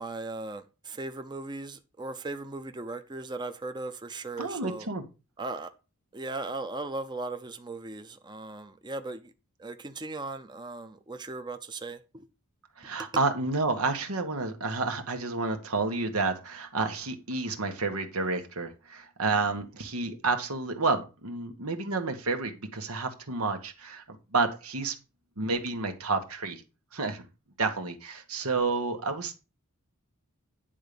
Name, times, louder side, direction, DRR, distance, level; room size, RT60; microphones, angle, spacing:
voice 1, 0.0-4.9 5.4-5.7 6.1-9.3 9.6-12.0, right 2 dB, 20° right, 0.6 m, -37 dB
voice 2, 4.4-5.0 12.8-24.9 25.4-26.6 26.9-27.2 27.6-29.3, right 3 dB, 90° right, 1.5 m, -30 dB
10.0 x 3.8 x 6.8 m
head